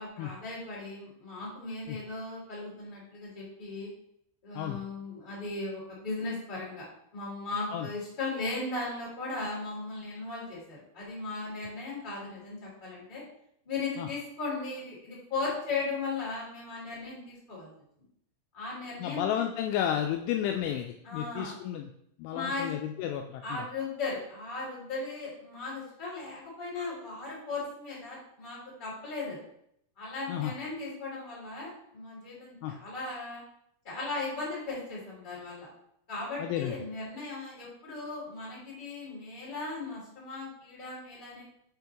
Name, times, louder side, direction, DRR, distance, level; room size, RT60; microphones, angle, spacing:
voice 1, 0.0-3.9 4.4-6.9 7.1-13.2 13.6-17.7 18.5-19.2 21.0-21.5 22.3-22.7 23.4-29.4 30.0-33.4 33.8-35.7 36.1-41.4, left 3 dB, 15° left, -7 dB, 1.9 m, -37 dB
voice 2, 19.0-21.9 22.2-23.7 30.3-30.5 32.6-32.7 36.4-36.7, left 10 dB, 85° left, 4 dB, 2.8 m, -32 dB
7.5 x 5.7 x 2.9 m, 0.72 s
omnidirectional pair, 5.7 m